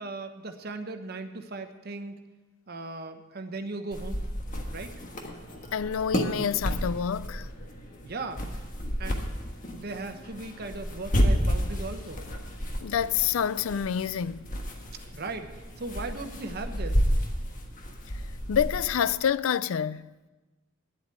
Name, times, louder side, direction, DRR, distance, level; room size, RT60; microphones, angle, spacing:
voice 1, 0.0-2.2 2.7-4.2 4.7-4.9 8.0-8.6 9.0-9.3 9.7-12.2 15.1-17.0, right 3 dB, 50° right, 1.0 m, -37 dB
sound 1, 3.9-19.1, equal, 40° left, 1.4 m, -31 dB
voice 2, 5.7-7.5 12.8-14.4 18.5-20.1, left 8 dB, 85° left, 0.4 m, -27 dB
9.9 x 8.1 x 9.7 m
head